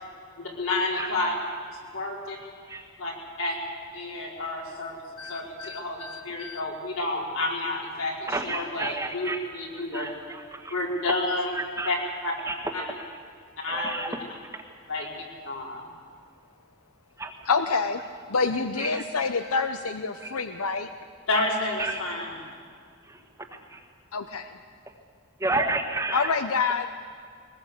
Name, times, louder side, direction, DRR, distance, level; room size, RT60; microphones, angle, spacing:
voice 1, 0.4-1.4 1.9-2.4 3.0-3.5 3.9-5.0 5.2-10.1 10.7-11.5 11.8-12.0 12.2-12.3 12.7-12.8 13.6-14.1 14.9-15.1 15.4-15.9 21.3-22.4, left 2 dB, 70° left, -2 dB, 5.0 m, -30 dB
voice 2, 5.2-6.6 17.5-18.0 18.3-20.9 24.1-24.6 26.1-26.9, left 4 dB, 90° left, 8 dB, 0.9 m, -27 dB
voice 3, 8.3-9.4 9.9-10.7 11.5-11.9 12.4-12.5 13.7-14.2 15.0-15.1 17.2-17.3 18.8-19.0 20.2-20.3 21.8-22.0 23.1-23.2 23.7-23.8 25.4-26.2, right 2 dB, 15° right, 4 dB, 1.5 m, -31 dB
22.0 x 20.0 x 8.2 m, 2.1 s
head